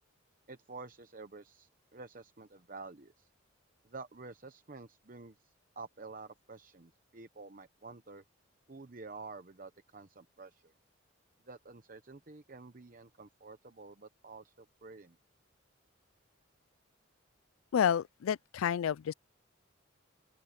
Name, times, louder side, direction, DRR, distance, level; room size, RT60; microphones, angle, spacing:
voice 1, 0.5-3.3 3.8-8.2 8.7-10.7 11.5-15.2, right 3 dB, 40° right, 0.9 m, -50 dB
voice 2, 17.7-19.1, left 8 dB, 85° left, 0.3 m, -30 dB
open air
head